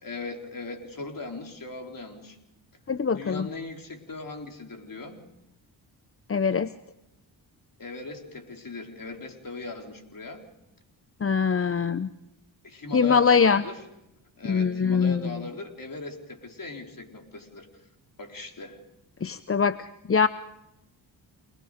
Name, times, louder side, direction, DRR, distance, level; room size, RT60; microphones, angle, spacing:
voice 1, 0.0-2.4 3.2-5.2 7.8-10.4 12.6-13.8 14.4-17.7 18.2-18.8, left 3 dB, 45° left, 3 dB, 4.2 m, -39 dB
voice 2, 2.9-3.5 6.3-6.7 11.2-12.1 12.9-13.6 14.4-15.3 19.2-20.3, left 6 dB, 30° left, 14 dB, 0.8 m, -23 dB
28.5 x 20.5 x 5.1 m, 0.87 s
cardioid pair, 60°, 46 cm